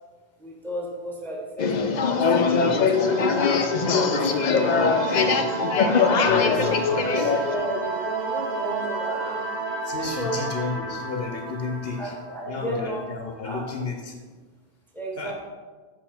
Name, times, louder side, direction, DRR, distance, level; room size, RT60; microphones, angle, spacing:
voice 1, 0.4-3.3 3.8-5.5 6.4-6.6 7.4-9.4 10.0-10.5 12.0-13.0 13.4-13.6 14.9-15.3, equal, ahead, -2 dB, 1.0 m, -33 dB
sound 1, 1.6-7.5, left 5 dB, 50° left, 0.6 m, -21 dB
sound 2, 2.9-13.2, right 4 dB, 55° right, 1.0 m, -32 dB
voice 2, 6.2-7.4 9.8-12.1 12.4-14.2 15.2-15.3, left 4 dB, 70° left, 3 dB, 0.9 m, -32 dB
7.2 x 5.1 x 4.3 m, 1.4 s
omnidirectional pair, 1.1 m